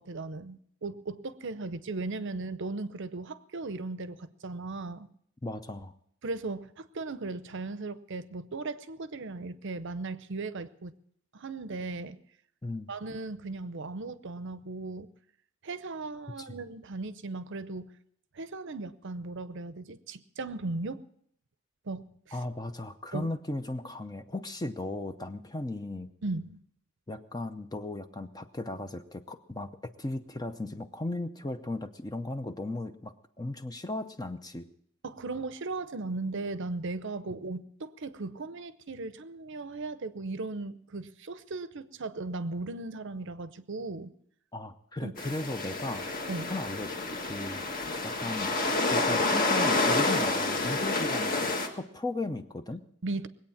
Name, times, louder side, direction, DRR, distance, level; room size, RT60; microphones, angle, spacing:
voice 1, 0.0-5.1 6.2-10.9 11.3-12.2 12.9-15.1 15.6-17.9 18.3-21.0 21.9-22.4 23.1-23.3 26.2-26.6 35.0-44.1 45.0-45.1 46.3-46.5 53.0-53.3, right 3 dB, 55° right, 14 dB, 0.7 m, -37 dB
voice 2, 5.4-5.9 12.6-12.9 16.4-16.6 22.3-26.1 27.1-34.7 44.5-46.1 46.5-47.6 48.0-48.5 48.9-52.8, left 2 dB, 20° left, 9 dB, 0.6 m, -36 dB
sound 1, 45.2-51.7, left 2 dB, 40° left, 1.6 m, -29 dB
20.5 x 8.7 x 7.2 m, 0.68 s
head